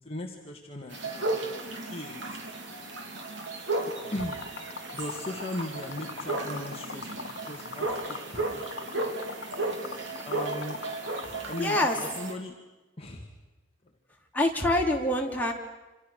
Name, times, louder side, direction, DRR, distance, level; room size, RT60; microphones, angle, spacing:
voice 1, 0.0-1.5 1.9-2.4 4.0-4.4 4.9-9.1 10.2-10.8 11.5-12.5 13.0-13.3, left 1 dB, 30° left, 1 dB, 2.1 m, -38 dB
sound 1, 0.9-12.3, right 2 dB, 65° right, 3.6 m, -34 dB
Liquid, 4.2-12.2, left 5 dB, 65° left, 1.0 m, -41 dB
voice 2, 11.6-12.0 14.3-15.5, left 1 dB, 10° left, -1 dB, 3.3 m, -25 dB
28.0 x 27.0 x 6.6 m, 1.1 s
head